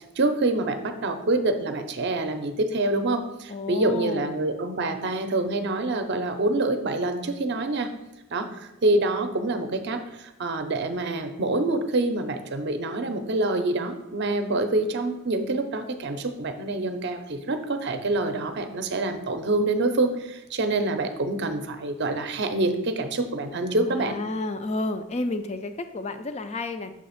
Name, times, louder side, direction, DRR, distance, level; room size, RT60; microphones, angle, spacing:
voice 1, 0.2-7.9 8.3-24.2, right 2 dB, 50° right, 8 dB, 0.6 m, -26 dB
voice 2, 3.5-4.3 23.9-26.9, left 2 dB, 30° left, 9 dB, 0.4 m, -31 dB
6.3 x 3.4 x 5.6 m, 0.92 s
head